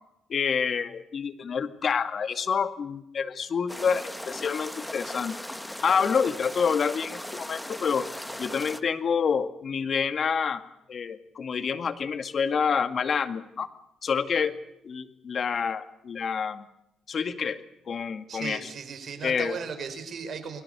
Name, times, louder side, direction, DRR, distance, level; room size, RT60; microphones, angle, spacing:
voice 1, 0.3-5.4 5.8-8.1 8.4-10.6 10.9-13.7 14.0-14.6 14.8-16.7 17.1-17.6 17.9-18.7 19.2-19.6, left 6 dB, 50° left, 9 dB, 2.1 m, -27 dB
sound 1, 3.7-8.8, left 1 dB, 5° left, 1.5 m, -38 dB
voice 2, 18.3-20.6, right 6 dB, 55° right, 7 dB, 5.6 m, -36 dB
29.5 x 21.0 x 7.0 m, 0.80 s
cardioid pair, 90°, 0 cm